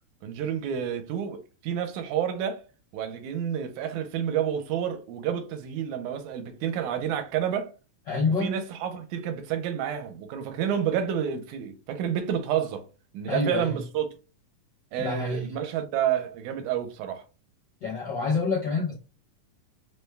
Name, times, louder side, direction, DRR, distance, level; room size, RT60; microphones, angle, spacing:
voice 1, 0.2-2.6 2.9-7.7 8.4-12.8 13.1-14.1 14.9-17.2, right 9 dB, 80° right, 2.1 m, -29 dB
voice 2, 8.1-8.5 13.3-13.8 15.0-15.5 17.8-18.9, left 4 dB, 85° left, 0.9 m, -27 dB
5.0 x 2.2 x 3.2 m
omnidirectional pair, 3.5 m